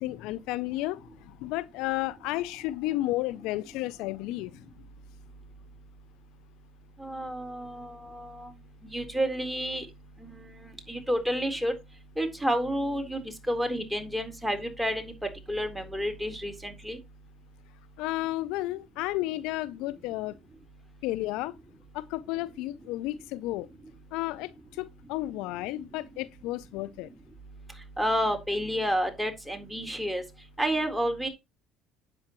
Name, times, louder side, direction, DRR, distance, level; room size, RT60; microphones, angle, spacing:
voice 1, 0.0-4.8 18.0-20.3 21.0-21.6 21.9-23.7 24.1-27.1, left 17 dB, 75° left, 0.5 m, -32 dB
voice 2, 7.0-8.5 8.9-9.9 10.2-10.4 10.9-11.7 12.2-15.1 15.5-17.0 28.0-30.2 30.6-31.3, equal, 5° right, 3.8 m, -30 dB
10.5 x 8.5 x 3.1 m
supercardioid pair, 80°, 0 cm